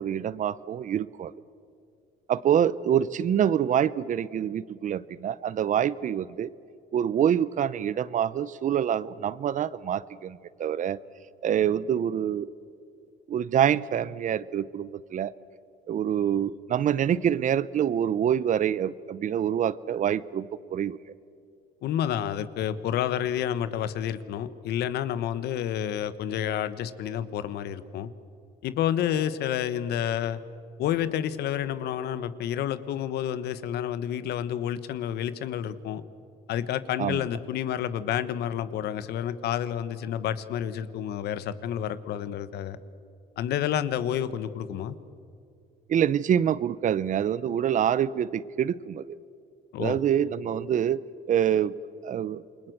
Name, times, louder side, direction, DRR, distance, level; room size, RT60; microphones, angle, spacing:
voice 1, 0.0-1.3 2.3-6.5 6.9-11.0 11.4-12.5 13.3-15.3 15.9-21.0 37.0-37.2 45.9-49.2 49.8-51.0 51.3-51.7 52.0-52.4, right 9 dB, 50° right, 19 dB, 0.8 m, -26 dB
voice 2, 21.8-28.1 28.6-30.4 30.8-36.0 36.5-42.8 43.4-45.0 49.7-50.0, left 10 dB, 75° left, 14 dB, 1.3 m, -29 dB
28.5 x 22.5 x 8.0 m, 2.5 s
cardioid pair, 110°, 17 cm